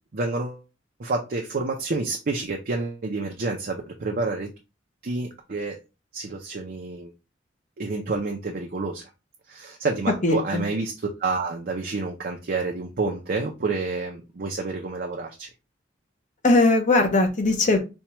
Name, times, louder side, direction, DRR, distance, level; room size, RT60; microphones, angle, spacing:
voice 1, 0.1-0.6 1.0-4.5 5.0-5.8 6.1-7.1 7.8-9.0 9.5-10.9 11.2-15.5, right 3 dB, 50° right, 1 dB, 0.6 m, -29 dB
voice 2, 10.2-10.6 16.4-17.8, left 2 dB, 40° left, 5 dB, 0.7 m, -19 dB
4.4 x 2.3 x 2.9 m, 0.28 s
head